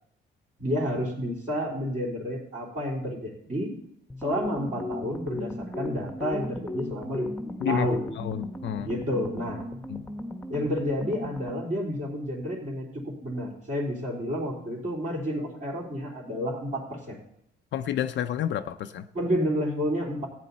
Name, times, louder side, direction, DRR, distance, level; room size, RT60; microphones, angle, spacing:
voice 1, 0.6-3.7 4.2-7.3 7.7-8.0 8.9-9.6 10.5-17.2 19.1-20.3, equal, 40° right, -6 dB, 3.8 m, -30 dB
sound 1, 4.1-11.8, left 2 dB, 5° left, 1.2 m, -36 dB
voice 2, 8.2-8.9 9.9-10.0 17.7-19.0, left 10 dB, 65° left, 8 dB, 0.5 m, -29 dB
14.5 x 9.4 x 4.3 m, 0.72 s
cardioid pair, 90°, 20 cm